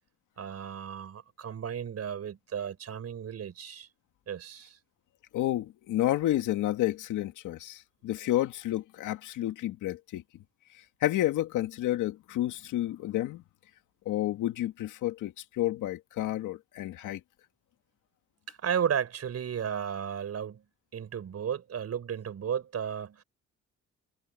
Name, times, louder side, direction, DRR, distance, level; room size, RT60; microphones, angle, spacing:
voice 1, 0.4-3.9 4.3-4.8 18.5-20.6 20.9-23.2, right 8 dB, 55° right, 5.4 m, -34 dB
voice 2, 5.3-10.2 11.0-13.4 14.1-17.2, left 14 dB, 90° left, 2.3 m, -30 dB
cardioid pair, 90°, 30 cm